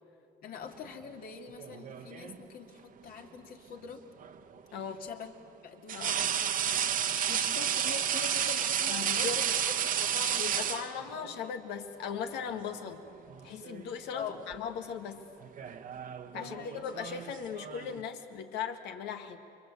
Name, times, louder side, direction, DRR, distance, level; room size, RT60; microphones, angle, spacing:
voice 1, 0.4-4.0 4.9-5.3 5.6-6.6 6.8-9.5 9.8-10.7 14.1-14.4 16.3-16.8, left 6 dB, 60° left, 3 dB, 2.6 m, -44 dB
sound 1, 1.6-2.4 4.2-4.4 5.9-11.4 12.5-12.8 13.1-13.9 14.2-14.5 15.4-18.0, right 9 dB, 55° right, 1.2 m, -32 dB
voice 2, 4.7-5.0 5.9-6.3 8.9-9.4 10.4-13.0 13.4-15.3 16.3-19.4, left 7 dB, 85° left, 6 dB, 2.1 m, -38 dB
29.0 x 24.0 x 8.3 m, 2.4 s
cardioid pair, 110°, 17 cm